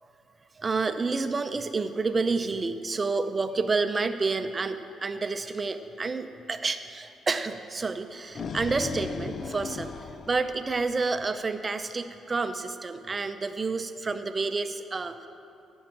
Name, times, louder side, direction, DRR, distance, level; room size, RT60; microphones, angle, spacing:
voice 1, 0.6-15.3, right 4 dB, 30° right, 9 dB, 0.6 m, -29 dB
sound 1, 8.0-11.3, left 5 dB, 50° left, 0.5 m, -37 dB
15.5 x 6.3 x 7.4 m, 2.5 s
cardioid pair, 90°, 0 cm